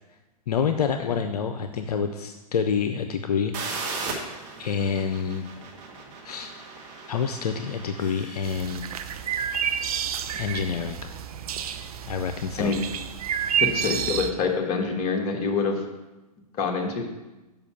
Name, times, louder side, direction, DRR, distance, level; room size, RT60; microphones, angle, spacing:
voice 1, 0.5-3.5 4.6-5.5 6.2-6.5 7.1-8.9 10.4-11.0 12.0-12.7, left 6 dB, 70° left, 7 dB, 0.6 m, -27 dB
sound 1, 3.5-9.2, right 4 dB, 35° right, 1.6 m, -37 dB
sound 2, 8.4-14.3, right 8 dB, 65° right, 0.6 m, -29 dB
voice 2, 13.6-15.8 16.5-17.0, left 4 dB, 35° left, 2 dB, 1.3 m, -26 dB
6.9 x 5.3 x 5.7 m, 1.1 s
hypercardioid pair, 115°, 20 cm